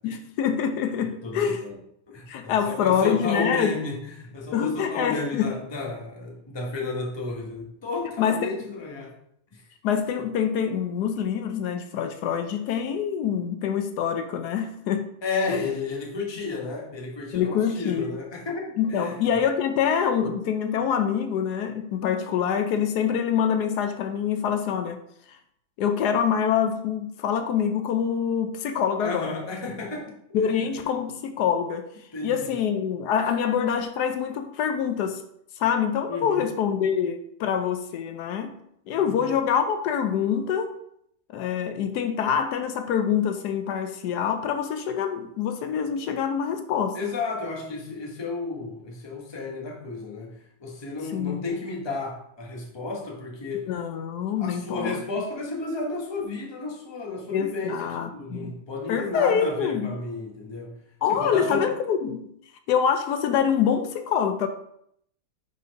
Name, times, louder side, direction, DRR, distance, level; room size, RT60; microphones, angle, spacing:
voice 1, 0.0-1.6 2.3-3.8 4.5-5.5 8.2-8.5 9.8-15.1 15.5-15.7 17.3-18.2 18.8-25.0 25.3-25.4 25.8-29.4 30.3-31.9 32.2-35.2 35.6-38.5 38.9-40.7 41.3-47.0 51.1-51.4 53.7-55.0 57.3-58.6 58.9-59.9 61.0-62.3 62.7-64.5, left 7 dB, 80° left, 1.1 m, -25 dB
voice 2, 1.2-1.8 2.1-9.1 9.5-9.6 15.2-19.2 29.0-30.5 32.1-32.6 36.1-36.5 38.9-39.3 46.9-53.7 54.4-57.8 58.1-60.7 61.1-61.7, left 3 dB, 20° left, 0.9 m, -32 dB
5.5 x 4.0 x 5.2 m
omnidirectional pair, 1.7 m